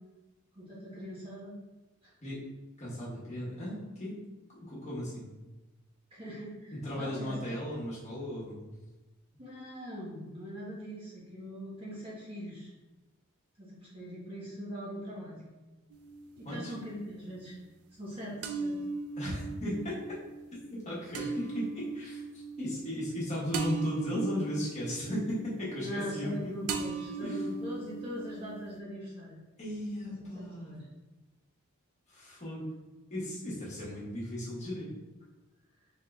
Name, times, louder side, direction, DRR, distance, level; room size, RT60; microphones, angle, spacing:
voice 1, 0.5-1.5 6.1-7.4 9.4-12.7 13.6-15.4 16.4-17.5 18.0-18.8 25.8-29.4 30.0-30.9, equal, 25° right, -7 dB, 1.2 m, -41 dB
voice 2, 2.8-4.1 4.6-5.3 6.7-8.6 16.4-16.7 19.2-20.2 20.5-26.5 27.2-27.5 29.6-30.8 32.1-32.6 33.1-34.9, left 1 dB, 35° left, -8 dB, 1.3 m, -36 dB
sound 1, 15.9-16.8 18.4-26.4 26.7-28.8, right 4 dB, 90° right, 0.4 m, -38 dB
4.2 x 3.7 x 2.4 m, 1.1 s
head